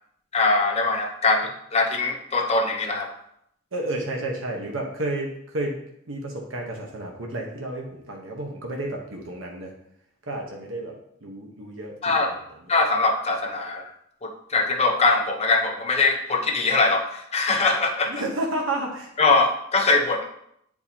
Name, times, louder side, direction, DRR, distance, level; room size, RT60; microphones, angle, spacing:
voice 1, 0.3-3.1 12.0-12.3 12.7-13.9 14.2-18.2 19.2-20.2, left 3 dB, 30° left, 2 dB, 0.9 m, -22 dB
voice 2, 3.7-5.8 6.1-9.7 10.3-12.7 18.1-19.1, right 1 dB, 75° right, 0 dB, 1.1 m, -31 dB
8.6 x 4.7 x 2.9 m, 0.74 s
head